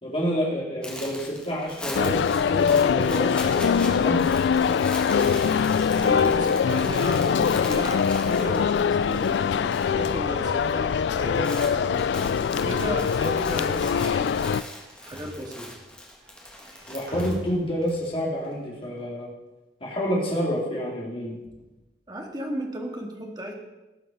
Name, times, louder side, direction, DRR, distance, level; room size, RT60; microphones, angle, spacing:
voice 1, 0.0-4.4 4.7-4.9 16.9-19.3 19.8-21.4, equal, 30° left, -3 dB, 3.2 m, -29 dB
sound 1, 0.8-10.1 10.4-10.8 11.1-18.0, left 1 dB, 5° left, 1.5 m, -40 dB
sound 2, 1.9-14.6, left 6 dB, 75° left, 0.3 m, -23 dB
sound 3, 2.9-12.2 12.4-18.1, equal, 65° right, 3.5 m, -45 dB
voice 2, 5.8-12.1 12.6-14.3 15.0-15.7 21.4-21.6 22.1-23.5, equal, 25° right, 1 dB, 1.8 m, -34 dB
18.5 x 6.6 x 5.5 m, 1.0 s
head